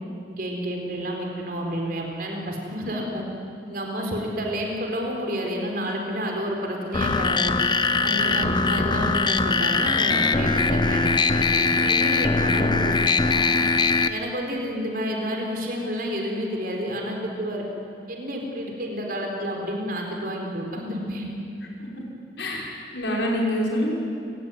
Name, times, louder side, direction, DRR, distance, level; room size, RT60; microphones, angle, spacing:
voice 1, 0.3-3.2 3.7-7.5 8.0-13.4 14.0-17.6 18.1-21.3, equal, 55° right, 1 dB, 4.3 m, -30 dB
sound 1, 6.9-14.1, left 4 dB, 25° left, 0.8 m, -21 dB
voice 2, 8.2-8.5 8.9-9.0 21.9-22.0 22.4-22.7 22.9-23.9, equal, 90° left, -1 dB, 6.1 m, -26 dB
29.5 x 18.0 x 9.3 m, 2.6 s
head